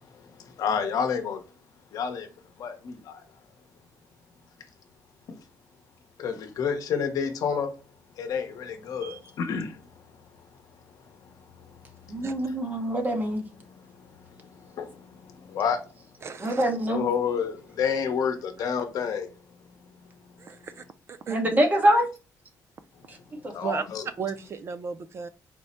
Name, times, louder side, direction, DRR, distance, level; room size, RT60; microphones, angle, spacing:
voice 1, 0.4-1.4 1.9-2.3 2.6-3.2 6.2-7.7 8.2-9.8 12.5-12.6 13.7-13.8 14.4-15.8 16.9-19.3 23.5-24.0, left 6 dB, 65° left, 0.8 m, -29 dB
voice 2, 12.1-13.4 16.4-17.1 21.3-22.1 23.1-23.2 23.4-23.8, right 1 dB, 25° right, 0.8 m, -24 dB
voice 3, 16.2-16.6 20.4-21.4 23.6-23.8 24.2-25.3, right 6 dB, 40° right, 0.3 m, -35 dB
4.5 x 2.1 x 4.1 m
cardioid pair, 130°, 7 cm